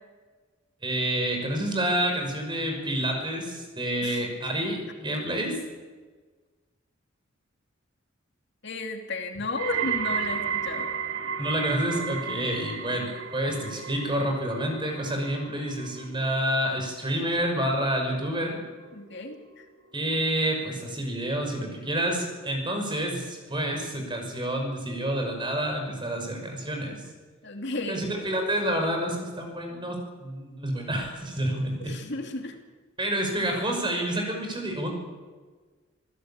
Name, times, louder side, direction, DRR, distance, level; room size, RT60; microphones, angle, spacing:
voice 1, 0.8-5.6 11.4-18.7 19.9-27.0 27.9-31.9 33.0-34.9, right 1 dB, 25° right, 3 dB, 5.8 m, -28 dB
voice 2, 8.6-10.9 18.9-19.6 27.4-28.0 31.8-32.6, left 2 dB, 60° left, 4 dB, 2.7 m, -33 dB
sound 1, 9.6-20.7 21.0-21.5 22.2-22.3, right 7 dB, 85° right, 2.2 m, -35 dB
27.0 x 16.0 x 8.7 m, 1.4 s
head